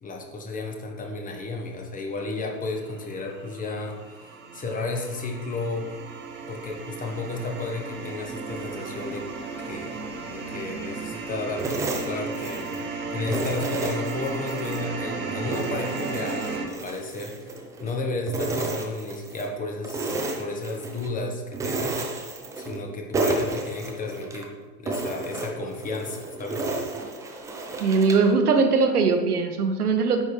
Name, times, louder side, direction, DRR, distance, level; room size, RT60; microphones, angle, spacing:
voice 1, 0.0-5.9 6.5-9.3 9.6-10.0 10.3-17.5 17.8-22.0 22.6-24.5 24.8-26.6, left 3 dB, 15° left, 2 dB, 0.9 m, -33 dB
sound 1, 2.8-16.7, right 4 dB, 25° right, 0.8 m, -35 dB
sound 2, 11.6-12.9 13.3-14.8 15.2-17.9 18.3-19.5 19.8-21.1 21.5-22.9 23.1-24.5 24.9-28.3, right 2 dB, 5° right, 0.4 m, -31 dB
voice 2, 27.8-30.2, right 4 dB, 70° right, 6 dB, 0.9 m, -20 dB
9.0 x 5.2 x 3.3 m, 1.3 s
figure-of-eight pair, 85°, 46 cm